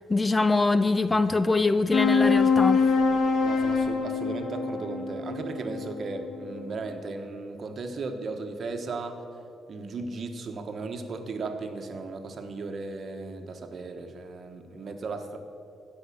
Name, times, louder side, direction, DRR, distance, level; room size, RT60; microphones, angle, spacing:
voice 1, 0.1-2.9, left 3 dB, 20° left, 13 dB, 0.4 m, -23 dB
sound 1, 1.9-6.7, left 4 dB, 65° left, 1.1 m, -24 dB
voice 2, 3.4-9.2 9.7-15.4, right 3 dB, 50° right, 6 dB, 1.1 m, -36 dB
15.5 x 5.5 x 7.0 m, 2.7 s
cardioid pair, 90°, 0 cm